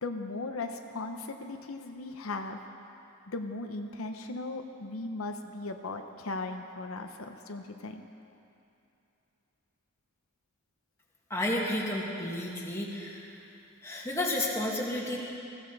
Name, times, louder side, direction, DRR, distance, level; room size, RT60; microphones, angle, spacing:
voice 1, 0.0-2.6 3.3-8.0, left 3 dB, 80° left, 5 dB, 0.9 m, -37 dB
voice 2, 11.3-13.2 13.8-15.2, left 1 dB, 15° left, -4 dB, 2.0 m, -31 dB
21.0 x 15.5 x 4.1 m, 2.8 s
head